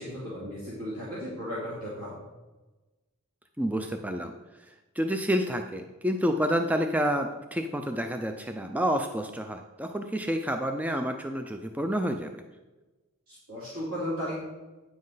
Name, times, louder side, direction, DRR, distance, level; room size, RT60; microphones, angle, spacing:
voice 1, 0.0-2.1 13.3-14.4, equal, 75° right, -8 dB, 2.8 m, -35 dB
voice 2, 3.6-4.3 4.6-12.4, equal, 5° right, 5 dB, 0.4 m, -29 dB
9.5 x 7.5 x 3.9 m, 1.2 s
head